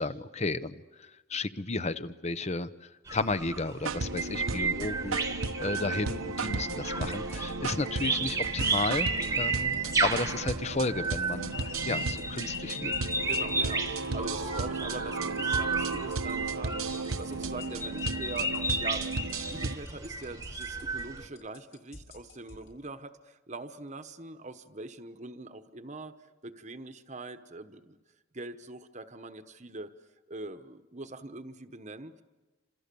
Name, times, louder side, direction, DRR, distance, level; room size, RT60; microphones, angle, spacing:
voice 1, 0.0-9.1 9.4-9.8 10.0-12.9, left 3 dB, 30° left, 13 dB, 0.8 m, -33 dB
sound 1, 3.1-21.3, right 3 dB, 15° right, 1.3 m, -33 dB
sound 2, 3.8-19.7, right 3 dB, 80° right, 1.1 m, -35 dB
voice 2, 4.3-4.8 9.1-9.4 13.2-28.0 28.3-29.9 30.3-32.2, right 2 dB, 35° right, 9 dB, 1.1 m, -43 dB
sound 3, 7.0-22.7, left 2 dB, 65° left, 6.1 m, -50 dB
29.0 x 26.5 x 7.0 m, 1.2 s
head